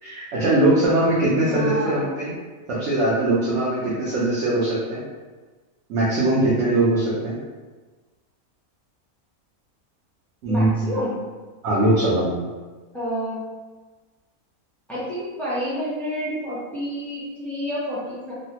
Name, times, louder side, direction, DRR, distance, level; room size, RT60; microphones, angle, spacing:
voice 1, 0.0-2.3 2.7-5.0 5.9-7.4 10.4-11.0 11.6-12.4, right 1 dB, 60° right, -8 dB, 0.9 m, -21 dB
voice 2, 1.3-2.0 10.5-11.2 12.9-13.4 14.9-18.3, equal, ahead, -9 dB, 0.4 m, -29 dB
3.1 x 2.2 x 2.8 m, 1.3 s
omnidirectional pair, 1.5 m